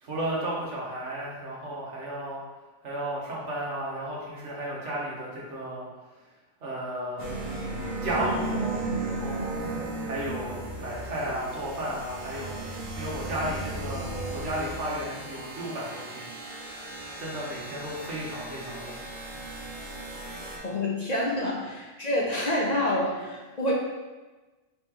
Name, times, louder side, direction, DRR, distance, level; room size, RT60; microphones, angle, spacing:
voice 1, 0.0-2.4 2.8-5.8 6.6-7.6 8.0-9.6 10.0-12.6 12.9-16.3 17.2-19.3, right 1 dB, 85° right, -5 dB, 1.4 m, -34 dB
sound 1, 7.2-20.6, right 2 dB, 55° right, 1.0 m, -35 dB
voice 2, 20.6-23.7, left 1 dB, 50° left, -3 dB, 0.6 m, -27 dB
4.2 x 3.0 x 3.7 m, 1.2 s
omnidirectional pair, 1.2 m